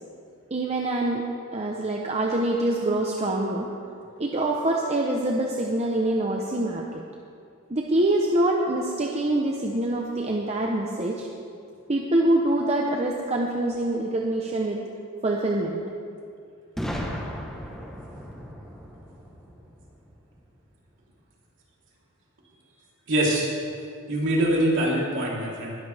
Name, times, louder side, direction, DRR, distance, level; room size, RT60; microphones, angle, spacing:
voice 1, 0.5-1.3 1.5-3.7 4.2-7.0 7.7-11.3 11.9-14.8 15.2-15.8, right 1 dB, 30° right, -1 dB, 0.9 m, -25 dB
Boom, 16.8-20.6, equal, ahead, 1.2 m, -36 dB
voice 2, 23.1-23.5 24.1-25.7, right 1 dB, 55° right, -4 dB, 3.5 m, -23 dB
20.5 x 13.0 x 3.5 m, 2.4 s
head